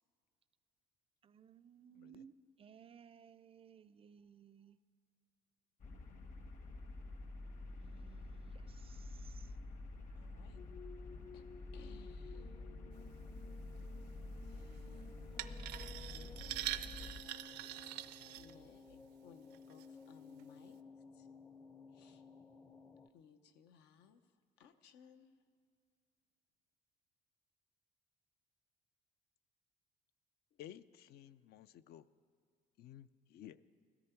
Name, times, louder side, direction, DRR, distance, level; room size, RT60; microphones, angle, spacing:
voice 1, 1.2-2.3 2.6-4.8 7.7-9.5 10.2-10.6, right 8 dB, 35° right, 16 dB, 0.4 m, -60 dB
voice 2, 2.0-2.3 30.6-32.1 32.8-33.6, left 11 dB, 70° left, 14 dB, 0.5 m, -54 dB
sound 1, 5.8-17.2, left 2 dB, 50° left, 1.4 m, -49 dB
voice 3, 10.2-10.6 11.3-11.4 11.7-12.6 14.5-15.5 16.0-16.8 18.3-20.8 21.1-21.3 21.9-22.2 23.1-24.2 24.6-25.3, left 7 dB, 85° left, 8 dB, 0.9 m, -63 dB
sound 2, 10.6-23.1, left 4 dB, 15° left, 0.5 m, -56 dB
sound 3, 15.4-19.0 19.5-19.9 20.4-20.5, right 15 dB, 90° right, 0.5 m, -44 dB
17.0 x 13.5 x 4.5 m, 2.2 s
cardioid pair, 110°, 17 cm